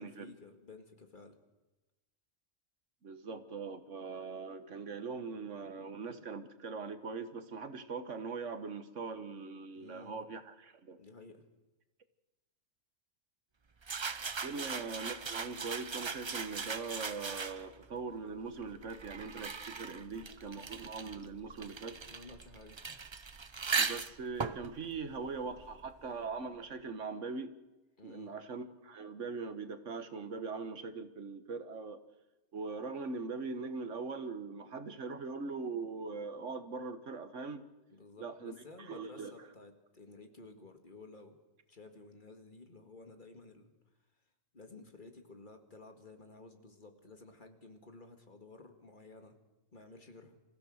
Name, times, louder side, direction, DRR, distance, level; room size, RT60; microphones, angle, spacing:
voice 1, 0.0-1.4 9.7-10.2 11.0-11.4 22.0-22.8 28.0-28.3 37.9-41.4 41.7-43.7 44.5-49.4 49.7-50.4, left 3 dB, 40° left, 5 dB, 2.1 m, -54 dB
voice 2, 3.0-11.0 14.4-22.0 23.7-27.5 28.0-32.0 32.5-37.6 38.2-39.5, right 4 dB, 80° right, 10 dB, 1.7 m, -41 dB
sound 1, 13.8-17.8 18.6-26.0, right 5 dB, 30° right, 0.5 m, -39 dB
26.5 x 15.5 x 6.5 m, 1.1 s
omnidirectional pair, 1.2 m